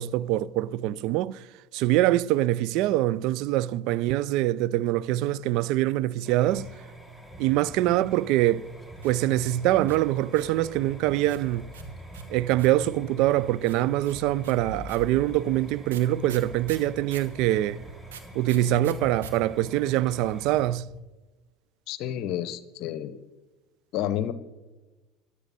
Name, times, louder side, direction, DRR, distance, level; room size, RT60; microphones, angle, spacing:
voice 1, 0.0-1.4 1.7-6.7 7.4-8.6 9.0-11.7 12.3-17.8 18.3-20.9, right 14 dB, 60° right, 0.4 m, -24 dB
sound 1, 6.2-20.6, right 2 dB, 20° right, 3.1 m, -46 dB
sound 2, 6.4-21.0, left 1 dB, 10° left, 3.4 m, -48 dB
sound 3, 9.0-10.6 11.3-12.9 13.7-17.4 18.1-19.3 19.6-19.7 19.9-20.3, right 8 dB, 80° right, 1.3 m, -45 dB
voice 2, 21.9-23.2 23.9-24.3, left 11 dB, 60° left, 0.7 m, -30 dB
14.0 x 11.0 x 4.1 m
hypercardioid pair, 75°, 0 cm